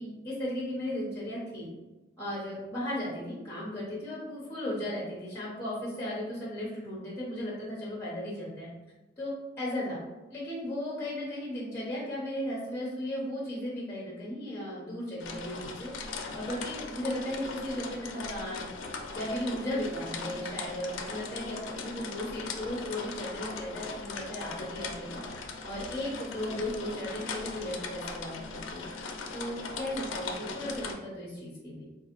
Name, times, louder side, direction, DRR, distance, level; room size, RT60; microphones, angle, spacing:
voice 1, 0.0-1.7 2.2-8.7 9.2-10.0 10.3-15.9 16.3-18.7 19.1-25.2 25.6-28.9 29.3-31.8, left 1 dB, 10° left, -6 dB, 0.7 m, -36 dB
sound 1, 15.2-30.9, left 4 dB, 80° left, 0.4 m, -39 dB
3.8 x 2.5 x 2.9 m, 1.1 s
head